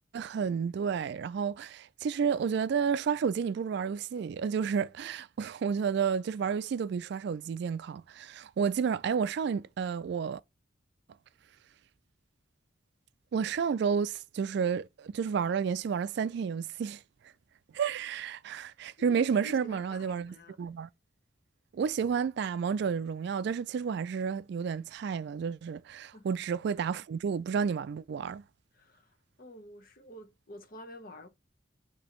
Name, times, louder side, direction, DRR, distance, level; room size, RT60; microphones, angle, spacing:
voice 1, 0.1-10.4 13.3-17.0 17.7-20.9 21.7-28.4, right 6 dB, 60° right, 0.3 m, -31 dB
voice 2, 19.0-20.5 26.1-26.3 28.7-29.1 29.4-31.3, left 1 dB, 50° left, 0.9 m, -48 dB
6.1 x 2.8 x 3.0 m
head